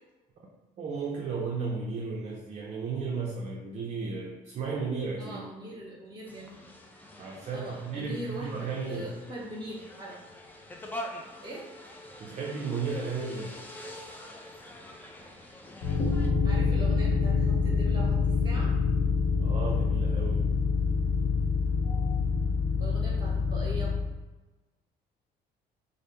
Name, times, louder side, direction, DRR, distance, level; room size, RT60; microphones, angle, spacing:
voice 1, 0.8-5.4 7.2-9.1 12.2-13.5 19.4-20.5, right 4 dB, 45° right, -1 dB, 0.5 m, -34 dB
voice 2, 5.2-6.7 7.5-10.2 11.4-11.7 16.4-18.7 21.8-22.2 22.8-24.0, right 1 dB, 25° right, -3 dB, 1.3 m, -41 dB
sound 1, 6.3-16.3, left 1 dB, 10° left, 0.5 m, -45 dB
sound 2, 15.8-24.0, left 5 dB, 45° left, 0.7 m, -26 dB
3.4 x 2.0 x 4.1 m, 1.2 s
cardioid pair, 110°, 17 cm